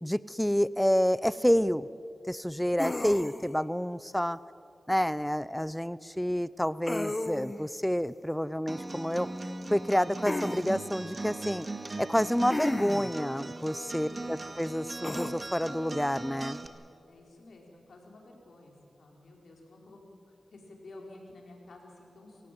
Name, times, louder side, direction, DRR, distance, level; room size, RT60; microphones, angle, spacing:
voice 1, 0.0-1.9 2.3-4.4 4.9-9.3 9.7-11.7 12.0-16.6, equal, 5° left, 17 dB, 0.6 m, -28 dB
sound 1, 2.8-3.6 6.9-7.7 10.3-10.6 12.5-13.2 15.0-15.3, left 2 dB, 30° left, 1.2 m, -33 dB
Acoustic guitar, 8.7-16.7, right 2 dB, 45° right, 2.0 m, -39 dB
voice 2, 13.9-14.3 17.1-22.5, left 2 dB, 80° left, 0 dB, 5.0 m, -52 dB
26.5 x 17.5 x 7.8 m, 2.6 s
cardioid pair, 45°, 0 cm